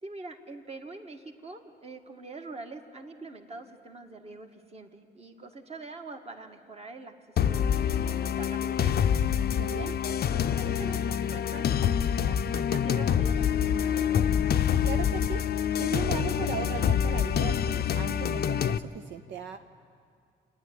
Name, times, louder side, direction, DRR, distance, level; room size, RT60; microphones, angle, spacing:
voice 1, 0.0-9.0 9.8-10.0 10.3-14.1, right 3 dB, 30° right, 4 dB, 1.8 m, -44 dB
sound 1, 7.4-18.8, left 8 dB, 50° left, 0.6 m, -26 dB
voice 2, 9.6-9.9 14.8-15.4 15.8-19.6, right 8 dB, 65° right, 7 dB, 0.7 m, -37 dB
28.0 x 9.8 x 9.4 m, 2.3 s
cardioid pair, 90°, 20 cm